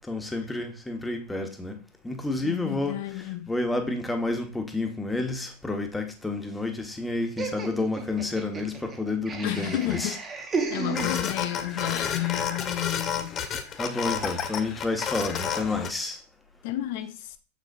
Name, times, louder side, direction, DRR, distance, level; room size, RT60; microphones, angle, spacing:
voice 1, 0.1-1.8 2.0-3.0 3.5-10.1 13.8-16.2, left 2 dB, 10° left, 1.3 m, -30 dB
voice 2, 2.4-3.5 9.4-10.2 10.7-13.4 16.6-17.4, left 14 dB, 55° left, 0.5 m, -31 dB
Laughter, 7.4-11.6, right 4 dB, 20° right, 1.3 m, -34 dB
sound 1, 10.9-15.9, left 7 dB, 30° left, 0.8 m, -31 dB
7.1 x 6.5 x 2.6 m
figure-of-eight pair, 90°, 0 cm